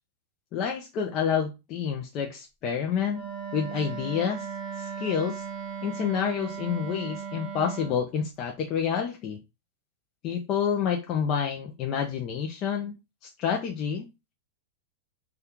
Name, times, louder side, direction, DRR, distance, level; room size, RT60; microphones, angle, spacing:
voice 1, 0.5-3.3 3.5-4.5 4.8-5.4 5.8-9.4 10.2-12.9 13.4-14.1, left 7 dB, 30° left, 2 dB, 0.4 m, -28 dB
Wind instrument woodwind instrument, 3.1-8.0, right 7 dB, 20° right, 0.9 m, -37 dB
2.9 x 2.3 x 3.5 m, 0.25 s
supercardioid pair, 170°, 0 cm